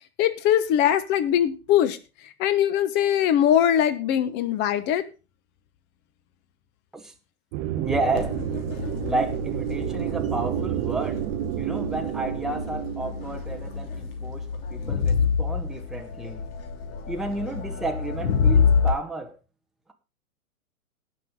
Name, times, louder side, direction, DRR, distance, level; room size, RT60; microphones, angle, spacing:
voice 1, 0.2-2.0 2.4-5.0, left 10 dB, 25° left, 1.2 m, -21 dB
sound 1, 7.5-14.1, right 13 dB, 25° right, 0.9 m, -30 dB
voice 2, 7.8-8.4 9.0-11.3 11.6-16.5 17.1-19.4, right 2 dB, ahead, 1.0 m, -31 dB
Crowd, 8.2-18.9, left 6 dB, 40° left, 2.9 m, -27 dB
17.5 x 6.4 x 3.8 m
figure-of-eight pair, 120°, 44 cm